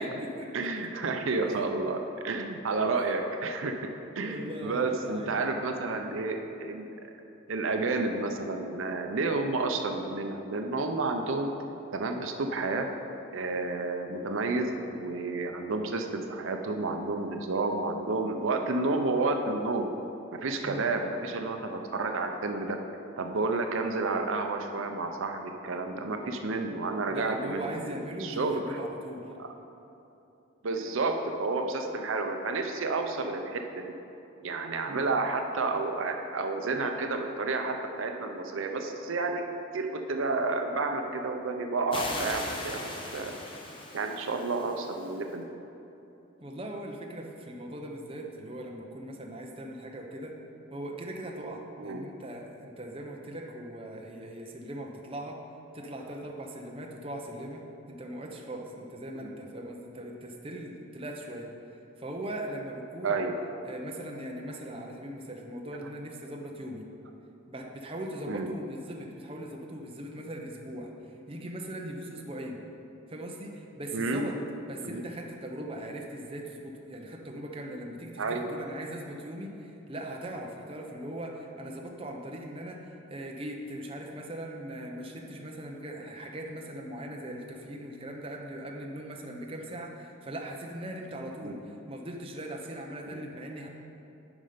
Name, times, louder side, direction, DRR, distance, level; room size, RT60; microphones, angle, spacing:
voice 1, 0.0-0.5 0.8-0.9 1.5-1.6 2.9-3.1 4.2-5.5 20.6-20.9 27.1-29.3 34.9-35.1 46.4-50.4 50.7-55.4 55.7-61.5 62.0-63.2 63.6-66.9 67.5-70.9 71.3-72.6 73.1-74.4 74.7-93.7, right 1 dB, 25° right, 0 dB, 0.7 m, -40 dB
voice 2, 0.5-3.8 4.2-6.9 7.5-11.5 11.9-12.9 13.3-19.9 20.3-22.8 23.2-28.8 29.4-29.5 30.6-33.9 34.4-39.4 39.7-43.3 43.9-45.5 51.8-52.0 59.2-59.3 63.0-63.3 68.3-68.5 73.9-74.3 74.8-75.0 78.2-78.4 91.4-91.5 93.1-93.2, right 3 dB, 70° right, 4 dB, 0.6 m, -30 dB
sound 1, 41.9-45.2, left 1 dB, 25° left, 0.8 m, -38 dB
9.7 x 5.3 x 5.0 m, 2.9 s
head